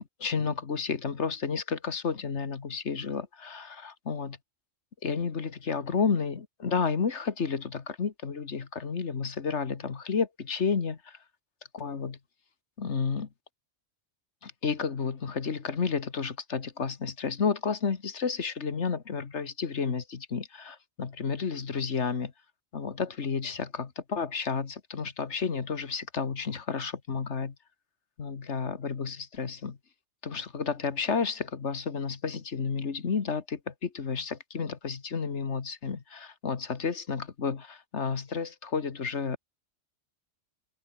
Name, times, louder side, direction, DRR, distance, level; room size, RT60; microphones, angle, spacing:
voice 1, 0.0-4.4 5.0-11.2 11.7-12.2 12.8-13.3 14.4-22.3 22.7-27.6 28.2-29.8 30.2-39.4, left 5 dB, 75° left, 1.9 m, -31 dB
omnidirectional pair, 1.2 m